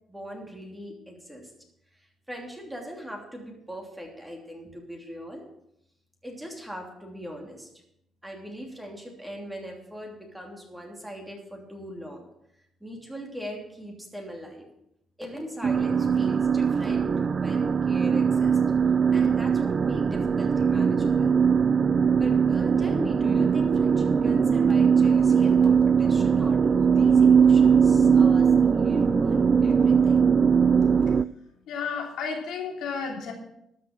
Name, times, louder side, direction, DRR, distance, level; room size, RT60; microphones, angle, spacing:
voice 1, 0.1-1.5 1.9-5.4 6.2-7.7 8.2-12.3 12.8-14.7 15.2-18.6 19.1-21.3 22.2-30.3, equal, 5° right, 0 dB, 3.0 m, -40 dB
sound 1, 15.6-31.2, right 6 dB, 40° right, 0.3 m, -20 dB
voice 2, 31.7-33.3, left 5 dB, 85° left, 1 dB, 3.2 m, -32 dB
13.0 x 5.9 x 7.5 m, 0.80 s
cardioid pair, 90°, 0 cm